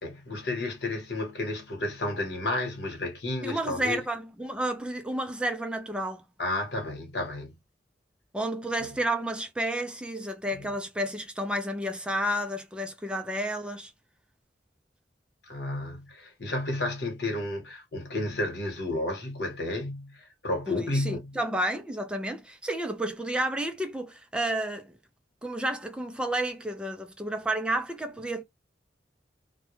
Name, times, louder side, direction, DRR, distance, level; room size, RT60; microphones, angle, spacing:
voice 1, 0.0-4.0 6.4-7.5 10.5-10.7 15.5-21.3, left 2 dB, 75° left, 1.1 m, -32 dB
voice 2, 3.4-6.2 8.3-13.9 20.7-24.9 25.4-28.4, right 1 dB, 5° right, 0.4 m, -31 dB
2.2 x 2.1 x 3.0 m
head